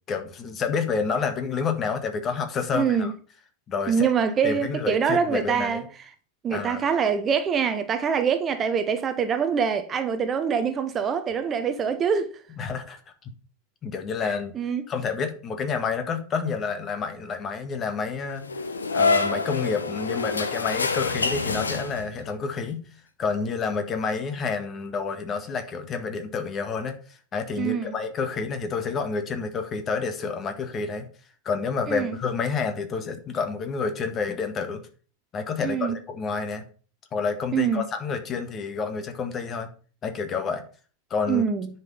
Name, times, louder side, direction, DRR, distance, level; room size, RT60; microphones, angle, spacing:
voice 1, 0.1-3.1 3.7-4.1 4.4-5.9 6.5-6.9 12.6-13.3 13.8-14.5 14.9-18.4 18.9-22.8 23.2-31.0 31.4-34.8 35.3-36.6 37.1-39.7 40.0-40.6 41.1-41.5, left 5 dB, 25° left, 1.7 m, -29 dB
voice 2, 2.7-3.1 3.9-5.8 6.4-12.3 14.5-14.8 27.6-27.9 31.9-32.1 35.6-36.0 37.5-37.8 41.3-41.7, right 7 dB, 25° right, 1.0 m, -24 dB
sound 1, 18.4-22.3, left 4 dB, 75° left, 1.1 m, -26 dB
10.0 x 5.7 x 5.5 m
figure-of-eight pair, 90°, 0 cm